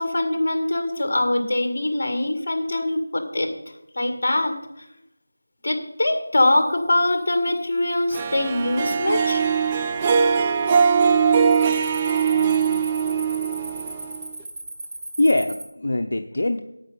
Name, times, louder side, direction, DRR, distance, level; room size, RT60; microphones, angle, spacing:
voice 1, 0.0-3.5 4.0-4.8 5.6-9.4, left 1 dB, 45° left, 6 dB, 2.0 m, -23 dB
Cricket, 6.7-7.1 7.6-8.0 8.6-8.7 9.3-9.9 10.2-10.5 10.8-15.7, right 2 dB, 50° right, 2.0 m, -37 dB
Harp, 8.1-14.4, right 6 dB, 15° right, 0.4 m, -21 dB
voice 2, 12.3-12.9 15.2-16.6, left 1 dB, 65° left, 5 dB, 0.7 m, -23 dB
9.2 x 8.8 x 5.5 m, 0.85 s
figure-of-eight pair, 170°, 0 cm